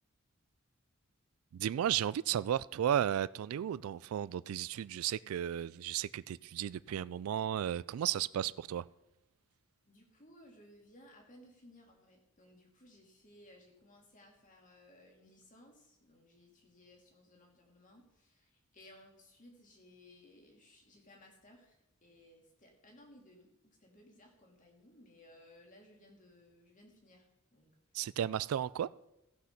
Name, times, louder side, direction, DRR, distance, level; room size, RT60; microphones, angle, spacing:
voice 1, 1.5-8.8 27.9-28.9, right 10 dB, 90° right, 0.3 m, -34 dB
voice 2, 9.9-27.8, left 1 dB, 40° left, 2.5 m, -60 dB
15.0 x 6.0 x 5.8 m
head